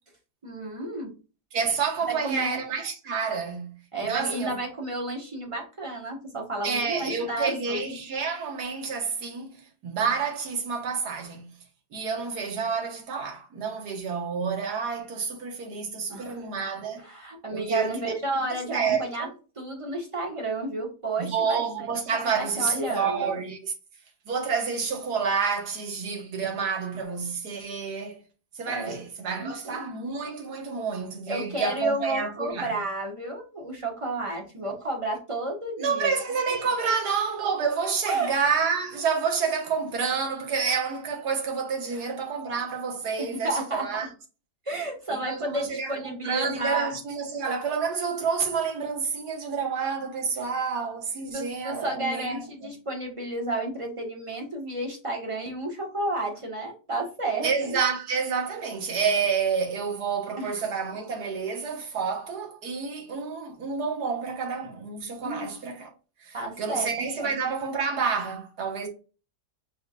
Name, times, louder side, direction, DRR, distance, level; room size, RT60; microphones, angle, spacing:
voice 1, 0.4-1.1 2.1-2.6 3.9-7.9 16.1-16.4 17.0-19.3 19.6-21.9 22.1-23.3 28.7-29.0 29.4-29.8 31.3-36.1 36.5-36.6 38.1-38.3 41.9-42.0 43.2-44.1 44.6-46.9 51.3-57.8 60.4-60.5 65.2-65.5 66.3-66.8 67.2-67.4, right 2 dB, 20° right, 1.3 m, -32 dB
voice 2, 1.5-3.8 4.1-4.6 6.6-11.5 11.9-17.1 17.5-18.0 18.4-18.5 18.7-19.3 21.2-23.6 24.3-28.2 28.6-32.8 35.8-44.1 45.1-52.7 57.4-65.9 66.2-68.9, right 5 dB, 70° right, 1.8 m, -29 dB
4.9 x 4.6 x 2.4 m
omnidirectional pair, 1.8 m